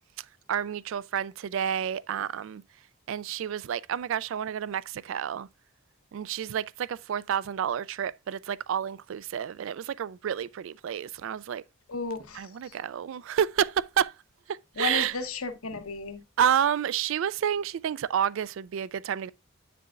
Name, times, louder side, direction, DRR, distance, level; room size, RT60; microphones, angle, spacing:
voice 1, 0.5-2.6 3.1-5.5 6.1-11.6 12.3-14.1 14.5-15.2 16.4-19.3, right 9 dB, 65° right, 0.3 m, -29 dB
voice 2, 11.9-12.4 14.8-16.2, left 4 dB, 90° left, 1.0 m, -33 dB
8.6 x 6.8 x 2.5 m
head